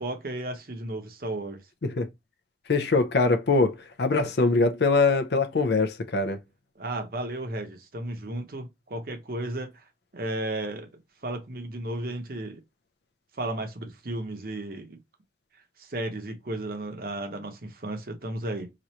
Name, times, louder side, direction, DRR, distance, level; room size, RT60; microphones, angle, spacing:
voice 1, 0.0-1.7 6.8-9.9 10.1-10.9 11.2-12.6 13.3-15.0 15.8-18.7, right 1 dB, 55° right, 0.8 m, -34 dB
voice 2, 2.7-6.4, left 3 dB, 70° left, 0.6 m, -23 dB
3.0 x 2.5 x 4.2 m
head